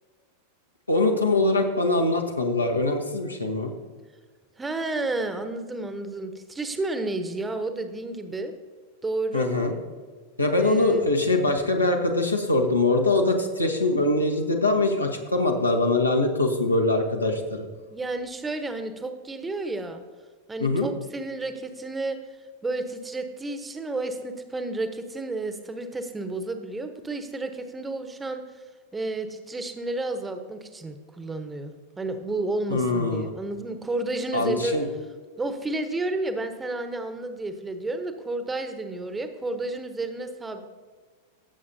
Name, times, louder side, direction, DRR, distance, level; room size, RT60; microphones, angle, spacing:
voice 1, 0.9-3.7 9.3-9.7 10.4-17.6 20.6-20.9 32.7-33.3 34.3-34.9, left 2 dB, 85° left, 2 dB, 1.3 m, -23 dB
voice 2, 4.6-8.5 9.0-9.5 10.6-11.1 17.9-20.0 20.5-22.2 22.6-28.4 28.9-34.8 35.4-40.6, right 2 dB, 10° right, 8 dB, 0.9 m, -31 dB
16.5 x 7.2 x 2.7 m, 1.5 s
figure-of-eight pair, 90°, 0 cm